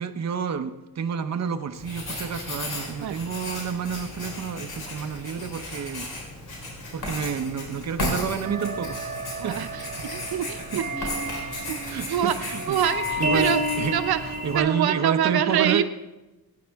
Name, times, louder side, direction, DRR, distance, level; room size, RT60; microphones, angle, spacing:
voice 1, 0.0-6.1 6.9-9.0 9.4-9.6 10.6-10.8 11.9-12.8 13.2-14.0 14.4-15.8, right 6 dB, 45° right, 8 dB, 0.7 m, -29 dB
Writing, 1.7-14.6, left 2 dB, 80° left, 3.8 m, -35 dB
sound 1, 8.4-15.1, equal, 20° right, 4.0 m, -31 dB
voice 2, 9.4-11.1 11.9-13.6 13.9-14.2 14.5-15.8, right 10 dB, 90° right, 9 dB, 0.7 m, -26 dB
18.0 x 9.4 x 3.5 m, 1.1 s
wide cardioid pair, 120°, 36 cm